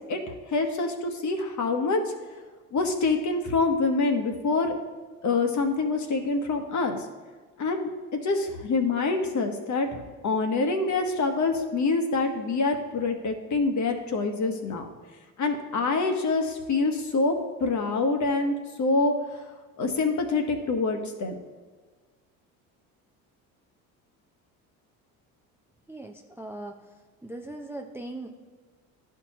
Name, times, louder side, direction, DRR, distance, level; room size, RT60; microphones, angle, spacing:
voice 1, 0.5-2.0 2.7-4.7 5.2-7.0 7.6-7.9 8.2-9.9 10.2-14.9 15.4-17.3 17.6-19.4 19.8-21.4, left 3 dB, 45° left, 5 dB, 1.2 m, -26 dB
voice 2, 25.9-26.8 27.2-28.4, right 2 dB, 5° right, 3 dB, 0.6 m, -39 dB
11.5 x 4.7 x 3.0 m, 1.4 s
supercardioid pair, 75°, 42 cm